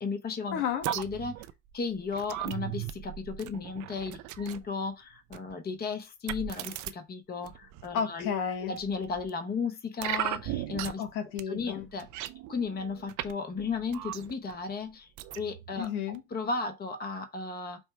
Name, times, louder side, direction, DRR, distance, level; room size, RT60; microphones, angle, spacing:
voice 1, 0.0-0.6 1.0-1.3 1.7-2.8 3.4-4.1 4.4-4.9 5.3-6.7 7.1-7.5 7.8-8.3 8.6-10.4 10.7-11.0 11.5-12.0 12.5-14.9 15.4-15.9 16.3-17.8, left 4 dB, 20° left, 0.9 m, -34 dB
voice 2, 0.5-0.9 7.9-8.7 11.0-11.9 15.8-16.2, left 7 dB, 70° left, 1.0 m, -32 dB
sound 1, 0.8-4.7 5.3-5.5 6.3-6.9 7.4-8.0 8.8-9.3 10.0-11.1 11.4-11.5 11.8-13.3 13.6-14.5 15.2-15.9 16.1-16.2, right 13 dB, 40° right, 0.5 m, -37 dB
5.3 x 2.1 x 4.5 m
hypercardioid pair, 80°, 45 cm